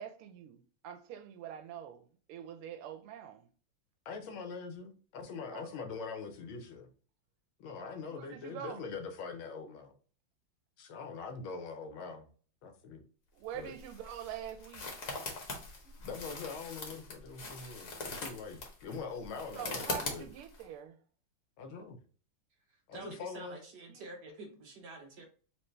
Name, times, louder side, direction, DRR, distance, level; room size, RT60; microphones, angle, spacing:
voice 1, 0.0-3.5 5.6-5.8 8.1-8.9 13.3-14.9 19.5-21.0 23.9-24.1, right 9 dB, 85° right, 1.5 m, -45 dB
voice 2, 4.0-6.9 7.6-9.9 10.8-12.3 12.6-13.0 13.5-13.7 16.0-20.3 21.6-22.0 22.9-23.6, left 5 dB, 75° left, 1.5 m, -43 dB
sound 1, 13.4-20.6, left 3 dB, 50° left, 1.2 m, -42 dB
voice 3, 22.9-25.3, right 2 dB, 70° right, 1.1 m, -48 dB
4.5 x 3.0 x 3.2 m
omnidirectional pair, 2.3 m